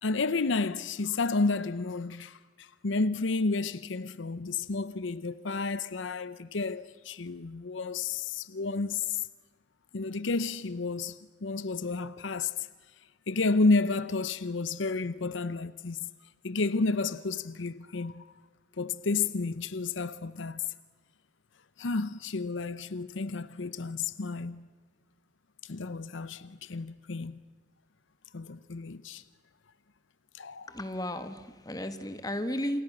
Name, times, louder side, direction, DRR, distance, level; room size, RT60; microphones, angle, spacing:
voice 1, 0.0-9.2 9.9-12.7 13.3-16.1 16.4-18.3 18.8-20.6 21.8-24.7 25.6-27.4 28.3-29.2 30.3-30.7, left 3 dB, 75° left, 0.7 m, -31 dB
voice 2, 30.7-32.8, left 1 dB, 20° left, 1.6 m, -34 dB
29.5 x 28.0 x 6.2 m
head